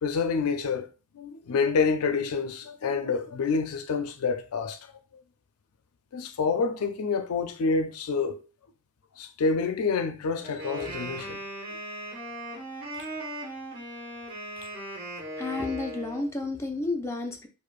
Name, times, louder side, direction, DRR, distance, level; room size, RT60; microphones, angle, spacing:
voice 1, 0.0-0.9 1.1-4.9 6.1-8.5 9.2-11.4, left 5 dB, 90° left, 0.4 m, -27 dB
Wind instrument woodwind instrument, 10.4-16.3, right 1 dB, 40° right, 1.1 m, -38 dB
voice 2, 15.4-17.5, left 3 dB, 10° left, 0.4 m, -31 dB
4.9 x 2.0 x 2.4 m
head